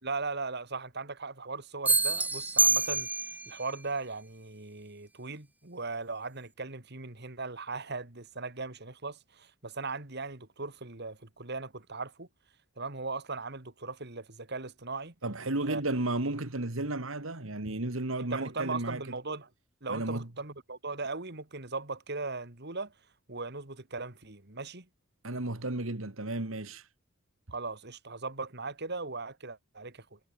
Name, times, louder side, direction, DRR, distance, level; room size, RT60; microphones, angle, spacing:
voice 1, 0.0-3.1 3.5-12.3 12.8-15.1 15.7-15.8 18.3-19.5 19.8-22.9 23.3-24.9 27.5-30.2, right 3 dB, 55° right, 2.6 m, -38 dB
sound 1, 1.9-3.5, right 3 dB, 10° right, 0.9 m, -26 dB
voice 2, 15.2-19.0 19.9-20.3 25.2-26.9, right 2 dB, 70° right, 2.2 m, -33 dB
head